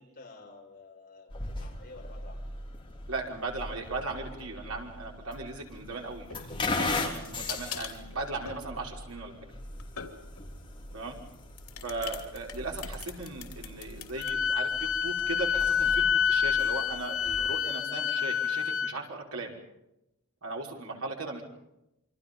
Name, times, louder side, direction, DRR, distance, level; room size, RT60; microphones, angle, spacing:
voice 1, 0.0-2.5 10.9-11.1, left 3 dB, 40° left, 0 dB, 5.7 m, -51 dB
sound 1, 1.3-17.5, left 2 dB, 25° left, 3.4 m, -39 dB
voice 2, 3.1-9.3 10.9-11.2 11.8-19.5 20.4-21.4, right 3 dB, 70° right, 0 dB, 5.4 m, -37 dB
sound 2, 6.2-10.5 11.3-14.3, left 8 dB, 90° left, 3.0 m, -42 dB
Wind instrument woodwind instrument, 14.2-18.9, left 7 dB, 65° left, 0.8 m, -28 dB
27.5 x 25.0 x 5.4 m, 0.88 s
head